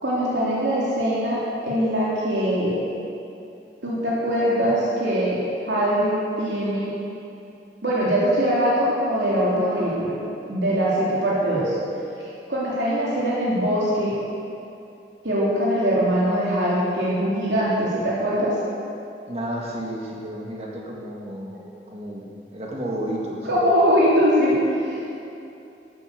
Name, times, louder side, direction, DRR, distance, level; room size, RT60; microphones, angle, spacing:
voice 1, 0.0-2.7 3.8-6.9 7.8-10.2 10.5-11.7 12.5-14.2 15.2-18.5 23.4-25.0, equal, 85° right, -7 dB, 2.9 m, -22 dB
voice 2, 19.3-21.6 21.9-23.6, right 1 dB, 35° right, -3 dB, 1.8 m, -32 dB
13.5 x 9.3 x 6.7 m, 2.7 s
head